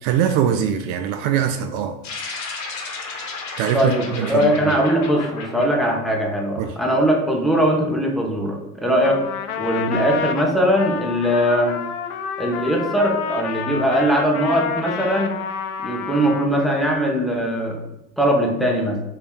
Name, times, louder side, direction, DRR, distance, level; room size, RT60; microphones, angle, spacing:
voice 1, 0.0-2.0 3.6-4.7 6.6-6.7, right 9 dB, 55° right, 7 dB, 0.5 m, -22 dB
sound 1, 2.0-6.7, left 3 dB, 40° left, 1.1 m, -33 dB
voice 2, 3.7-9.2 9.6-11.8 12.4-15.4 15.8-17.8 18.2-19.0, equal, ahead, 0 dB, 0.9 m, -20 dB
Trumpet, 9.0-16.9, left 7 dB, 80° left, 0.6 m, -29 dB
3.6 x 3.3 x 4.4 m, 0.88 s
hypercardioid pair, 90°, 43 cm